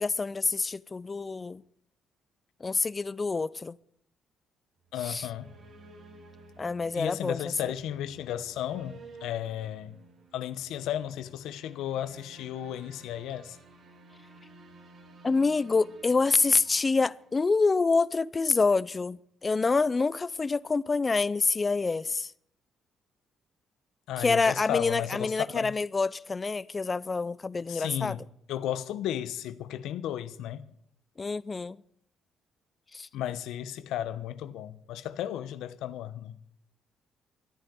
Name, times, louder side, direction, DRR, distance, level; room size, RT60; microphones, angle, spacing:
voice 1, 0.0-1.6 2.6-3.8 5.0-5.3 6.6-7.5 15.2-22.3 24.2-28.2 31.2-31.8 32.9-33.1, left 4 dB, 25° left, 0.5 m, -27 dB
sound 1, 4.8-17.7, right 3 dB, 50° right, 2.8 m, -53 dB
voice 2, 4.9-5.5 6.9-10.0 10.3-13.6 24.1-25.7 27.7-30.7 33.1-36.4, left 11 dB, 85° left, 1.0 m, -34 dB
13.5 x 10.5 x 9.5 m
cardioid pair, 115°, 0 cm